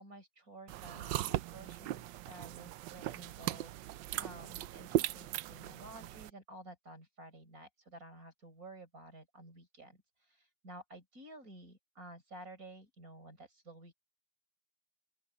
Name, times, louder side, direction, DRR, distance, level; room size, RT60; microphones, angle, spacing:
voice 1, 0.0-10.0 10.4-13.9, right 1 dB, 40° right, 5.2 m, -52 dB
sound 1, 0.7-6.3, right 14 dB, 70° right, 1.1 m, -38 dB
open air
omnidirectional pair, 2.3 m